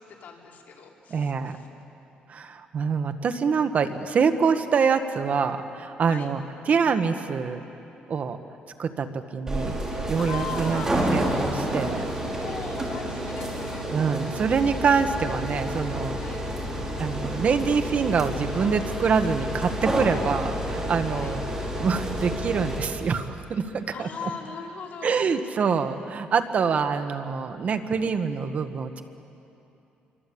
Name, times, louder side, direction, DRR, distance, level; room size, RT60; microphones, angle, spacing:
voice 1, 0.0-1.7 6.1-6.3 10.2-11.0 12.4-13.9 16.1-16.4 21.1-21.4 23.9-25.2, left 6 dB, 60° left, -1 dB, 4.5 m, -39 dB
voice 2, 1.1-1.6 2.3-7.6 8.1-8.4 8.8-9.8 10.1-10.9 11.1-12.0 13.9-16.2 17.0-21.4 21.8-24.1 25.0-29.0, right 5 dB, 50° right, 8 dB, 1.5 m, -25 dB
sound 1, 9.5-22.8, equal, 20° right, 5.2 m, -29 dB
28.0 x 24.0 x 8.6 m, 2.8 s
cardioid pair, 115°, 3 cm